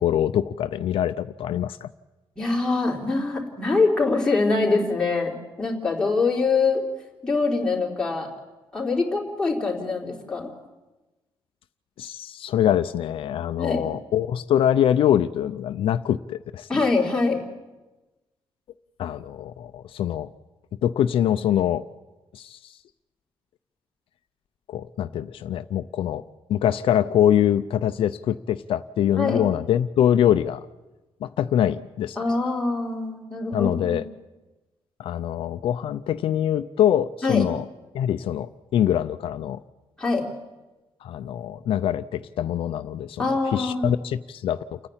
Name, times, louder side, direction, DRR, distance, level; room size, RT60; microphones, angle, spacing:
voice 1, 0.0-1.9 12.0-16.8 19.0-20.3 20.8-21.8 22.3-22.7 24.7-26.2 26.5-30.6 31.2-32.2 33.5-34.1 35.0-37.6 37.9-39.6 41.0-43.2 43.5-44.9, left 10 dB, 70° left, 10 dB, 0.5 m, -24 dB
voice 2, 2.4-6.8 7.2-8.3 8.7-10.5 13.6-13.8 16.7-17.4 29.2-29.4 32.2-34.0 37.2-37.5 40.0-40.3 43.2-43.9, left 3 dB, 10° left, -3 dB, 3.6 m, -24 dB
29.5 x 9.9 x 8.9 m, 1.1 s
wide cardioid pair, 165°, 9 cm